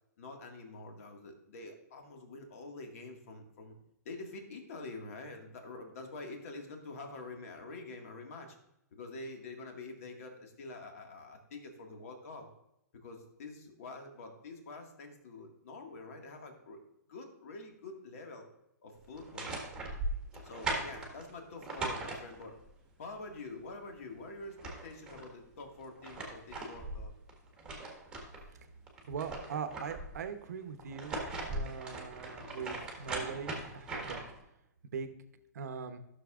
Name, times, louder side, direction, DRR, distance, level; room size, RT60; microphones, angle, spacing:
voice 1, 0.2-3.7 4.1-8.6 8.9-12.5 12.9-16.8 17.1-18.5 18.8-19.6 20.4-22.6 23.0-27.1, left 3 dB, 55° left, 3 dB, 1.9 m, -46 dB
sound 1, 19.1-22.7 24.1-24.2 24.4-25.3 25.8-28.5 28.9-30.2 30.8-34.4, right 2 dB, 10° right, 1.5 m, -39 dB
voice 2, 29.0-31.2 31.5-34.2 34.9-35.1 35.5-36.0, right 6 dB, 65° right, 8 dB, 0.9 m, -41 dB
12.5 x 6.7 x 2.5 m, 0.84 s
hypercardioid pair, 160°, 9 cm